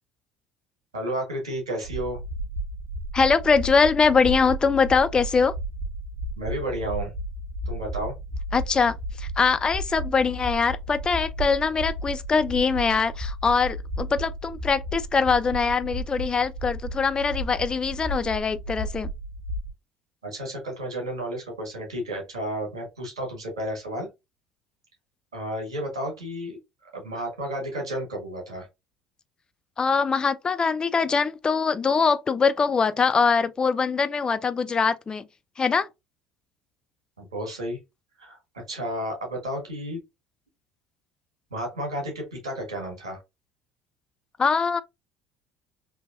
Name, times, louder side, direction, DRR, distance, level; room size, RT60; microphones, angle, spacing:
voice 1, 0.9-2.2 6.4-7.1 7.6-8.1 20.2-24.1 25.3-26.6 26.9-28.7 37.2-37.8 38.2-38.4 38.7-40.0 41.5-43.2, right 1 dB, 80° right, 1.6 m, -32 dB
sound 1, 1.8-19.7, right 1 dB, 50° right, 0.8 m, -33 dB
voice 2, 3.1-5.5 8.5-19.1 29.8-35.2 35.6-35.9 44.4-44.8, left 5 dB, 25° left, 0.4 m, -23 dB
3.5 x 2.8 x 2.6 m
figure-of-eight pair, 60°, 3 cm